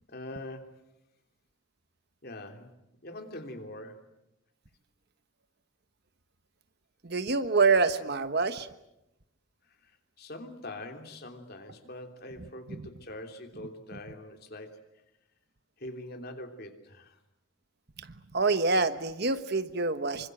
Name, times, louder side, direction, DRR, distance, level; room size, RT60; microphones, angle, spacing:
voice 1, 0.1-0.8 2.2-2.7 3.0-4.1 9.8-9.9 10.2-14.8 15.8-17.2, left 1 dB, 45° left, 5 dB, 3.2 m, -43 dB
voice 2, 7.0-8.7 12.7-12.8 18.3-20.3, right 4 dB, 50° right, 11 dB, 1.3 m, -26 dB
26.5 x 25.0 x 7.8 m, 0.87 s
head